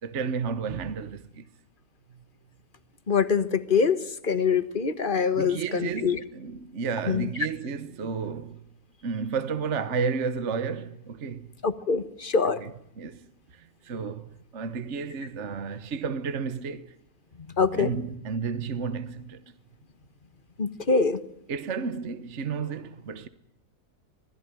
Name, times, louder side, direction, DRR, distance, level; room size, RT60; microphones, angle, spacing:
voice 1, 0.0-1.5 2.1-2.2 5.3-8.7 9.0-11.5 12.6-12.7 13.0-16.9 17.7-19.4 21.5-23.3, right 5 dB, 50° right, 1.4 m, -32 dB
voice 2, 3.1-6.2 7.1-7.3 11.6-12.6 17.6-17.9 20.6-21.2, left 5 dB, 35° left, 1.6 m, -24 dB
26.5 x 19.5 x 9.2 m
omnidirectional pair, 1.6 m